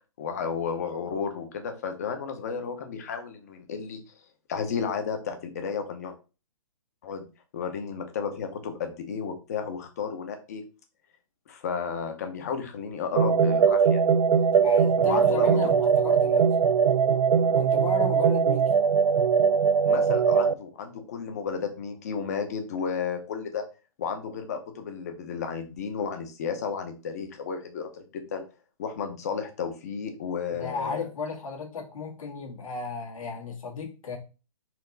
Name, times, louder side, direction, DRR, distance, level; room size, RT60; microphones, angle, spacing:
voice 1, 0.2-4.0 4.5-6.1 7.0-7.2 7.5-10.6 11.5-14.0 15.0-15.5 17.4-17.6 19.9-23.6 24.0-28.4 28.8-31.1, left 6 dB, 30° left, 6 dB, 0.7 m, -33 dB
sound 1, 13.1-20.5, right 6 dB, 75° right, 0.4 m, -21 dB
voice 2, 14.6-16.6 17.6-18.7 30.5-34.2, left 4 dB, 70° left, 0 dB, 1.7 m, -34 dB
4.4 x 2.9 x 3.9 m, 0.33 s
hypercardioid pair, 170°, 18 cm